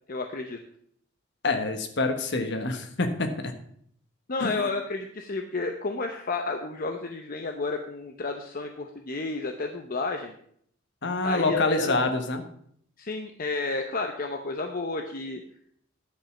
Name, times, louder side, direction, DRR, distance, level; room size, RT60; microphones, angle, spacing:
voice 1, 0.1-0.6 4.3-10.3 11.2-12.0 13.0-15.4, left 3 dB, 45° left, 5 dB, 0.8 m, -31 dB
voice 2, 1.4-3.5 4.4-4.7 11.0-12.4, left 3 dB, 60° left, 7 dB, 1.3 m, -26 dB
10.5 x 5.4 x 7.1 m, 0.65 s
head